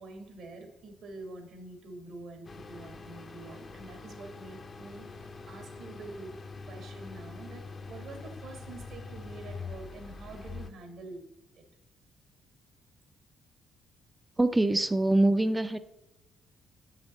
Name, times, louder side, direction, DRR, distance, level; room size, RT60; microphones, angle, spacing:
voice 1, 0.0-11.3 11.5-11.6, right 2 dB, 75° right, 1.4 m, -46 dB
sound 1, 2.4-10.7, left 4 dB, 35° left, 0.5 m, -44 dB
voice 2, 14.4-15.8, right 2 dB, 15° right, 0.3 m, -24 dB
7.7 x 5.7 x 3.9 m
cardioid pair, 90°, 0 cm